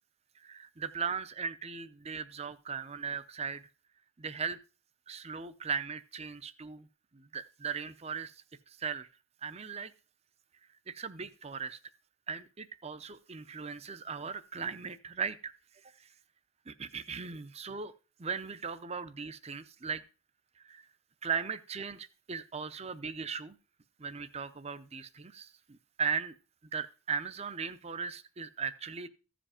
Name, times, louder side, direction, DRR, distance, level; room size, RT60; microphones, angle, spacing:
voice 1, 0.4-3.7 4.2-4.6 5.1-6.9 7.1-8.3 8.7-9.1 9.4-9.9 10.9-11.8 12.3-15.5 15.8-15.9 16.7-17.9 18.2-20.0 20.6-20.9 21.2-23.6 24.0-26.3 26.7-29.1, right 6 dB, 30° right, 14 dB, 0.6 m, -38 dB
14.5 x 5.1 x 4.9 m, 0.33 s
head